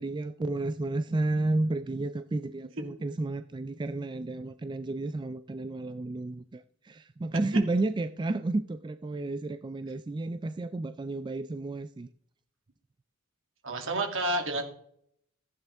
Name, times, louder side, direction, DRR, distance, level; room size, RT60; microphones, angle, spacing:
voice 1, 0.0-12.1, right 2 dB, 20° right, 0.3 m, -32 dB
voice 2, 13.6-14.6, right 2 dB, 65° right, 2.5 m, -29 dB
15.0 x 9.2 x 3.5 m
head